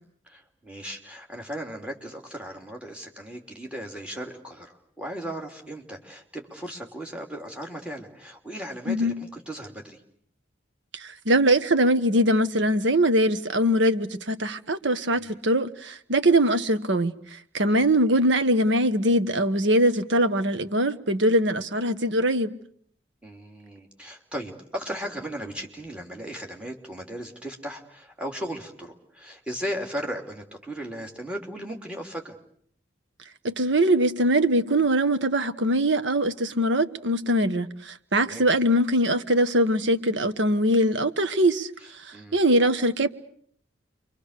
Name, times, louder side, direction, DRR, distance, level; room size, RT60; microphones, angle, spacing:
voice 1, 0.2-10.0 15.1-15.4 17.6-17.9 23.2-32.3 38.2-38.5 42.1-42.4, equal, 5° right, 3.2 m, -37 dB
voice 2, 8.9-9.2 10.9-17.1 17.5-22.5 33.4-41.7 42.0-43.1, right 1 dB, 70° right, 1.3 m, -22 dB
29.0 x 24.0 x 6.7 m
head